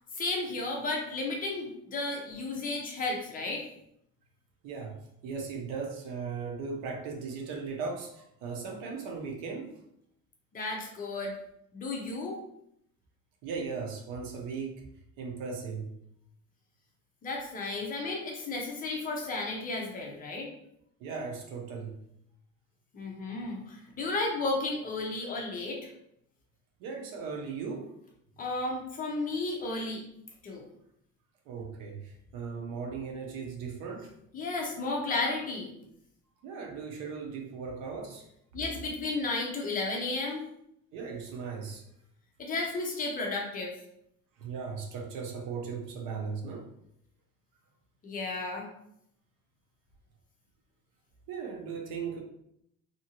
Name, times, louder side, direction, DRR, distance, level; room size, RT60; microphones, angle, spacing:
voice 1, 0.1-3.6 10.5-11.3 11.7-12.4 17.2-20.5 22.9-25.9 28.4-30.0 30.4-30.7 34.3-35.7 38.5-40.5 42.4-43.7 48.0-48.7, left 3 dB, 25° left, -1 dB, 0.5 m, -33 dB
voice 2, 4.6-9.7 13.4-14.8 15.2-15.9 21.0-22.0 26.8-27.9 31.5-34.1 36.4-38.2 40.9-41.8 44.4-46.7 51.3-52.2, right 5 dB, 80° right, 2 dB, 0.8 m, -37 dB
2.7 x 2.6 x 2.8 m, 0.74 s
cardioid pair, 165°, 32 cm